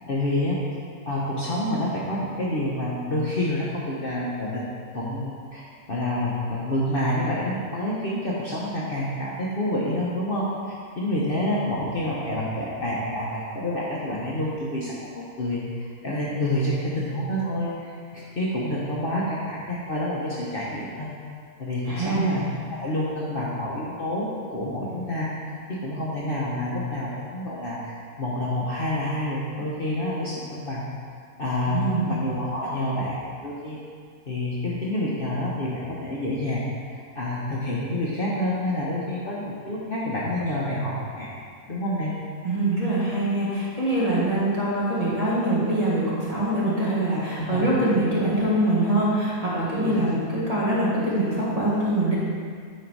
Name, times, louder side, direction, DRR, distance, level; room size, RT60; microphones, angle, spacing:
voice 1, 0.1-0.6 1.1-4.6 4.9-21.1 21.6-25.3 25.8-30.8 31.4-33.8 34.3-36.6 37.1-41.3 41.7-42.1 47.4-47.6 49.9-50.0, left 1 dB, 45° left, -6 dB, 1.0 m, -28 dB
voice 2, 21.9-22.5 31.6-32.3 42.4-52.1, right 1 dB, 25° right, -8 dB, 1.7 m, -24 dB
9.3 x 3.9 x 4.6 m, 2.1 s
omnidirectional pair, 1.5 m